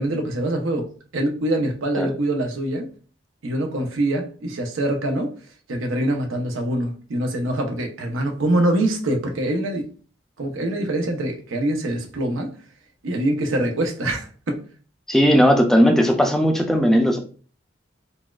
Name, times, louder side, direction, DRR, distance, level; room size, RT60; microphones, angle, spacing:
voice 1, 0.0-2.9 3.4-5.3 5.7-9.9 10.4-12.5 13.0-14.6, right 1 dB, 90° right, 0.7 m, -24 dB
voice 2, 15.1-17.2, equal, ahead, 0.4 m, -17 dB
4.0 x 2.4 x 2.2 m
head